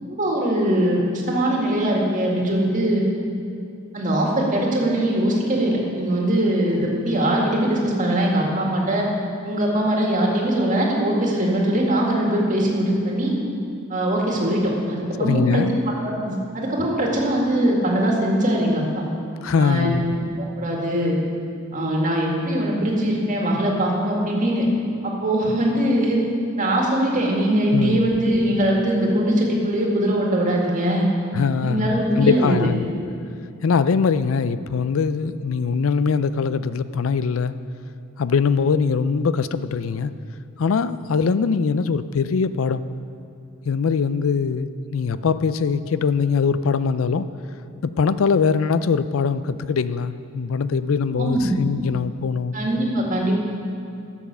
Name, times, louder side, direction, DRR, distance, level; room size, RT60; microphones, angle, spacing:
voice 1, 0.0-3.1 3.9-9.1 9.4-13.3 13.9-18.8 19.6-20.0 20.4-21.2 21.7-24.7 25.0-26.2 26.6-31.1 31.6-32.6 33.0-33.1 51.2-51.6 52.5-53.4, right 1 dB, 40° right, -1 dB, 2.0 m, -21 dB
voice 2, 15.2-15.8 19.4-20.1 27.7-28.1 31.3-32.9 33.6-37.5 38.2-40.1 40.6-42.8 43.6-47.3 47.8-52.6, left 5 dB, 85° left, 14 dB, 0.4 m, -22 dB
11.5 x 7.3 x 6.8 m, 2.6 s
head